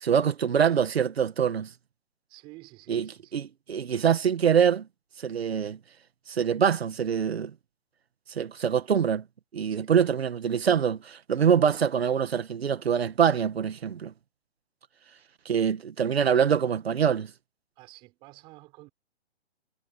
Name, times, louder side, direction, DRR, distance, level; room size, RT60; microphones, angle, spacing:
voice 1, 0.0-1.7 2.9-3.1 3.3-3.4 3.7-4.9 5.2-5.8 6.3-7.5 8.4-9.2 9.5-14.1 15.5-17.3, right 7 dB, 65° right, 2.0 m, -24 dB
voice 2, 2.3-3.5 9.7-10.3 15.0-15.1 17.8-18.9, right 21 dB, 15° right, 6.6 m, -50 dB
hypercardioid pair, 180°, 33 cm